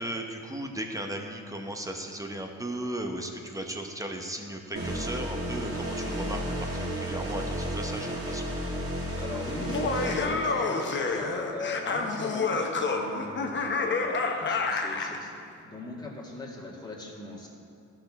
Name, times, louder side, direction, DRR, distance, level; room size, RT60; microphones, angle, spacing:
voice 1, 0.0-8.4, right 1 dB, 10° right, 3 dB, 0.9 m, -36 dB
sound 1, 4.8-11.2, equal, 50° right, 2.3 m, -33 dB
voice 2, 9.2-17.5, left 3 dB, 15° left, -4 dB, 1.9 m, -40 dB
Laughter, 9.6-15.2, left 4 dB, 40° left, 0.9 m, -29 dB
13.0 x 6.0 x 3.6 m, 2.4 s
cardioid pair, 90°, 30 cm